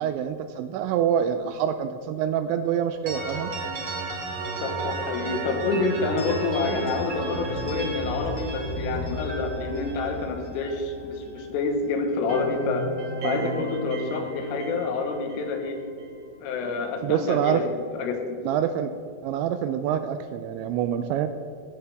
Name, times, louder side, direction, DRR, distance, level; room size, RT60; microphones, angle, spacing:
voice 1, 0.0-3.5 13.2-13.6 17.0-17.6 18.4-18.9 19.2-21.3, right 9 dB, 85° right, 9 dB, 2.7 m, -26 dB
sound 1, 3.1-11.8 12.1-16.2, right 2 dB, 50° right, 1.3 m, -33 dB
voice 2, 4.6-12.9 13.2-15.8 16.4-18.2, left 4 dB, 90° left, 4 dB, 4.0 m, -28 dB
17.0 x 10.5 x 3.5 m, 2.5 s
omnidirectional pair, 5.6 m